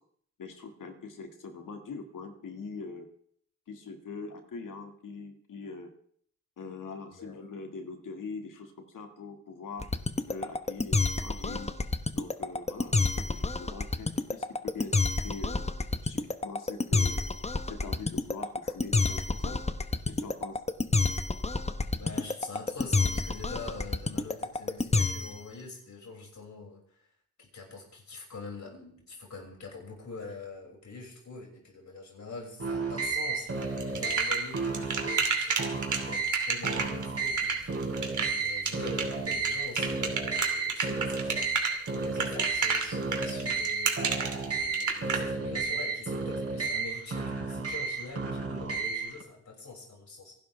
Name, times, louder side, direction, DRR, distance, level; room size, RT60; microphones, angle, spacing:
voice 1, 0.4-3.1 3.7-5.9 6.6-9.8 10.3-11.7 12.1-15.6 16.0-17.2 17.7-19.6 20.1-20.6 48.3-48.5, left 4 dB, 85° left, 5 dB, 2.2 m, -43 dB
voice 2, 7.1-7.4 22.0-27.1 27.4-37.7 38.3-44.0 44.4-50.4, left 3 dB, 65° left, -1 dB, 6.3 m, -44 dB
sound 1, 9.8-25.5, left 3 dB, 20° left, 1.0 m, -28 dB
sound 2, 32.6-49.2, right 4 dB, 50° right, 4.5 m, -32 dB
sound 3, 33.6-45.2, right 5 dB, 70° right, 2.7 m, -30 dB
26.0 x 12.0 x 3.5 m, 0.63 s
cardioid pair, 85°, 31 cm